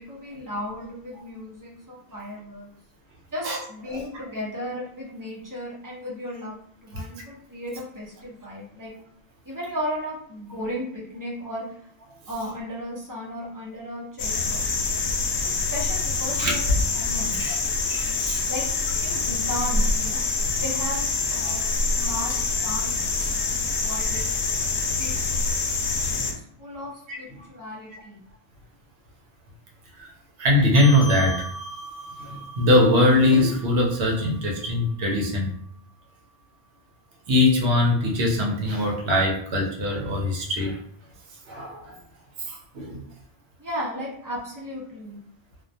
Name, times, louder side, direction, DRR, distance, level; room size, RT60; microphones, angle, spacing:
voice 1, 0.0-2.7 3.3-8.9 9.4-11.8 12.3-17.4 18.5-18.7 19.0-21.0 21.3-24.3 25.0-25.4 26.1-28.2 43.6-45.2, equal, 25° right, -5 dB, 0.5 m, -35 dB
sound 1, 14.2-26.3, left 3 dB, 85° left, 0.8 m, -25 dB
voice 2, 17.9-18.5 21.4-21.5 27.1-27.2 30.0-30.1 30.4-31.5 32.2-35.5 37.3-40.8 41.5-41.9 42.4-43.0, left 1 dB, 85° right, -1 dB, 1.0 m, -22 dB
sound 2, 30.7-35.5, equal, 60° right, 0.9 m, -39 dB
2.3 x 2.2 x 2.6 m, 0.63 s
omnidirectional pair, 1.1 m